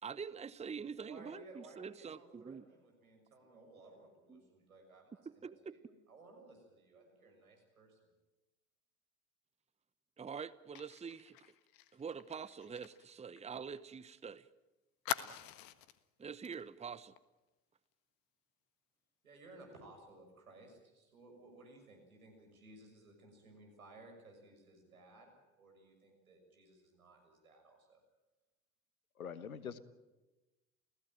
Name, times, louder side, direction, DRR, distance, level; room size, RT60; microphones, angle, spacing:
voice 1, 0.0-2.7 4.3-4.4 5.3-5.7 10.2-11.4 11.9-14.5 16.2-17.1, right 6 dB, 15° right, 16 dB, 0.9 m, -45 dB
voice 2, 0.9-8.1 19.2-28.0, right 2 dB, 85° right, 2 dB, 6.8 m, -58 dB
Fire, 10.8-14.2 14.5-14.6 15.1-16.0 16.4-16.6 16.9-17.2, left 13 dB, 55° left, 1.6 m, -44 dB
voice 3, 29.2-29.8, left 7 dB, 85° left, 16 dB, 1.3 m, -44 dB
29.5 x 16.5 x 9.1 m, 1.1 s
figure-of-eight pair, 65°, 41 cm